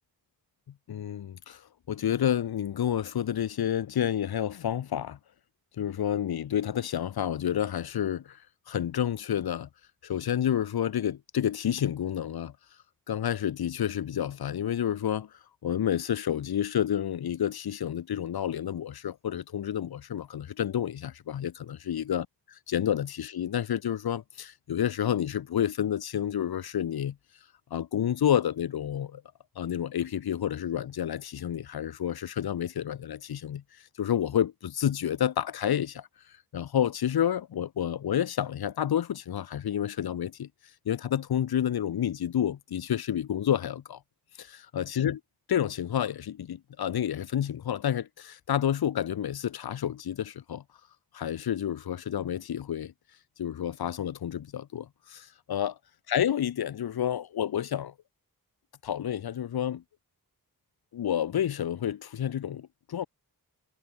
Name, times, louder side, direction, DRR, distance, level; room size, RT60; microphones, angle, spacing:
voice 1, 0.9-1.6 1.9-5.2 5.8-8.4 8.7-9.7 10.0-12.5 13.1-15.3 15.6-27.2 27.7-29.2 29.6-33.6 34.0-36.1 36.5-40.5 40.9-44.0 44.4-44.5 44.7-45.2 45.5-50.6 51.1-52.9 53.4-55.7 56.1-57.9 58.8-59.8 60.9-63.1, left 10 dB, 85° left, 0.6 m, -29 dB
wide cardioid pair, 65°, 37 cm